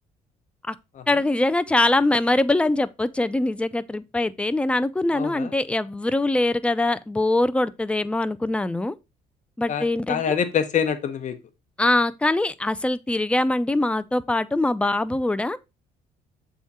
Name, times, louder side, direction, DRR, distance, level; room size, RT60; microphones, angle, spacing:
voice 1, 1.1-8.9 9.6-10.4 11.8-15.6, left 2 dB, 5° left, 0.4 m, -23 dB
voice 2, 5.1-5.5 9.7-11.4, left 7 dB, 45° left, 0.9 m, -25 dB
7.1 x 3.7 x 4.2 m
cardioid pair, 110°, 17 cm